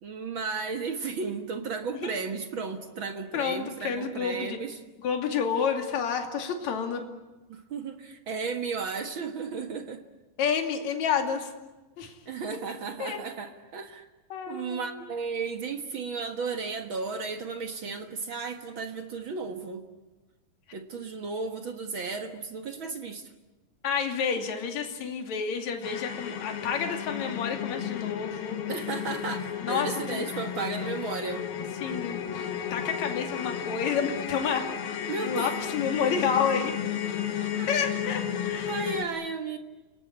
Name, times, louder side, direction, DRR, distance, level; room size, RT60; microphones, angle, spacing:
voice 1, 0.0-4.8 7.5-10.0 12.2-14.1 14.5-19.8 20.7-23.3 28.7-31.4 35.1-35.5 37.4-37.7 38.7-39.6, right 4 dB, 60° right, 6 dB, 1.3 m, -34 dB
voice 2, 3.3-4.6 5.0-7.0 10.4-11.5 12.0-12.1 13.0-13.2 14.3-15.0 23.8-28.6 29.6-30.3 31.8-34.7 35.2-36.7 37.7-38.7, left 6 dB, 50° left, 4 dB, 3.5 m, -29 dB
sound 1, 25.8-39.0, left 9 dB, 70° left, 3.6 m, -33 dB
29.5 x 19.0 x 9.6 m, 1.1 s
omnidirectional pair, 4.5 m